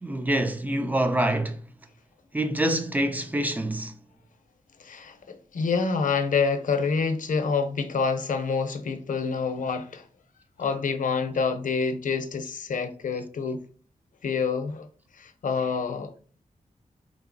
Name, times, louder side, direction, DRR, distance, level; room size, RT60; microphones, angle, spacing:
voice 1, 0.0-1.6 2.3-3.9, right 1 dB, 10° right, 0.3 m, -26 dB
voice 2, 4.8-10.0 10.6-13.6 14.2-14.9 15.2-16.1, left 5 dB, 80° left, 0.5 m, -27 dB
3.8 x 3.5 x 2.5 m
wide cardioid pair, 170°, 13 cm